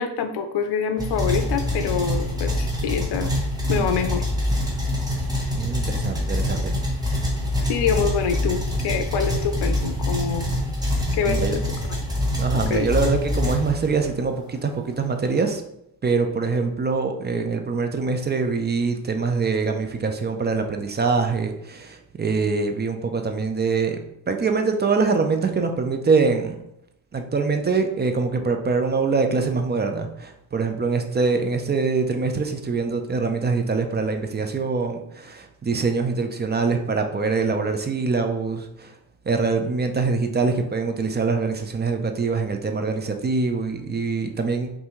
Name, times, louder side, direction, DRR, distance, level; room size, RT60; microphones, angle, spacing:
voice 1, 0.0-3.3 3.7-4.2 7.7-10.5 11.1-11.6 12.5-12.9, left 6 dB, 65° left, 7 dB, 0.7 m, -25 dB
sound 1, 1.0-14.2, left 1 dB, 10° right, 1.0 m, -25 dB
voice 2, 5.5-6.7 11.3-11.6 12.4-15.6 16.0-24.0 24.3-26.6 27.1-38.9 39.3-44.7, right 4 dB, 25° right, 5 dB, 0.4 m, -24 dB
5.6 x 2.7 x 3.0 m, 0.79 s
cardioid pair, 115°, 44 cm